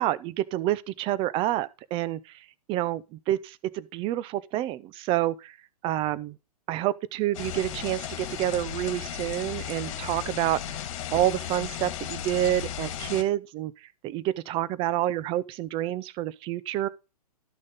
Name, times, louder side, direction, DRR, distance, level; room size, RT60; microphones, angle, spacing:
voice 1, 0.0-2.4 2.7-5.6 5.8-6.4 6.7-10.6 11.1-16.9, right 13 dB, 25° right, 0.6 m, -28 dB
sound 1, 7.3-13.2, left 10 dB, 50° left, 1.9 m, -35 dB
12.5 x 6.4 x 3.8 m
figure-of-eight pair, 115°, 20 cm